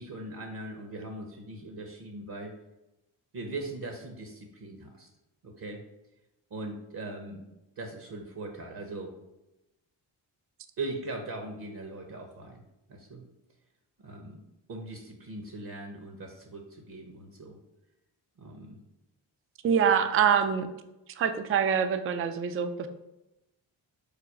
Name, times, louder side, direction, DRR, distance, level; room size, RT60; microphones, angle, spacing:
voice 1, 0.0-2.5 3.3-5.1 5.4-5.8 6.5-7.5 7.8-9.1 10.8-12.6 12.9-13.2 14.0-14.4 14.7-17.6 18.4-18.8, right 2 dB, 50° right, 3 dB, 0.9 m, -40 dB
voice 2, 19.6-20.7 21.2-22.9, right 7 dB, 30° right, 9 dB, 0.4 m, -25 dB
4.9 x 2.2 x 4.7 m, 0.95 s
supercardioid pair, 45°, 48 cm